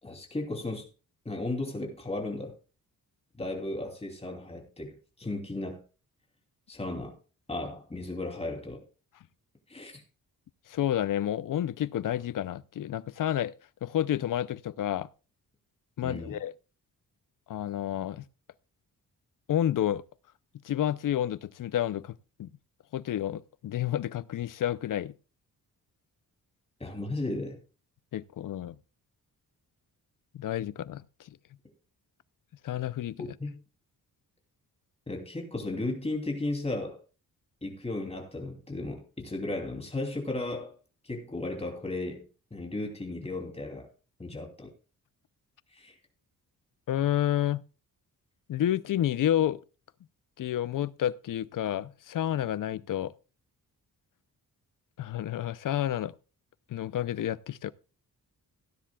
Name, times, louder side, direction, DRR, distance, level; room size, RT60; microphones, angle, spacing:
voice 1, 0.0-0.9 1.2-2.6 3.4-5.8 6.7-7.2 7.5-8.8 9.7-10.0 16.0-16.4 26.8-27.6 33.2-33.6 35.1-37.0 37.6-40.7 41.0-43.9 44.2-44.7 45.7-45.9, left 2 dB, 15° left, 3.0 m, -35 dB
voice 2, 10.7-13.5 13.8-15.1 16.0-16.5 17.5-18.2 19.5-20.0 20.6-22.5 22.9-25.1 28.1-28.7 30.3-31.0 32.6-33.3 46.9-47.6 48.5-49.6 50.4-53.1 55.0-56.1 56.7-57.7, left 11 dB, 60° left, 0.6 m, -30 dB
17.0 x 10.0 x 2.3 m
wide cardioid pair, 145°, 36 cm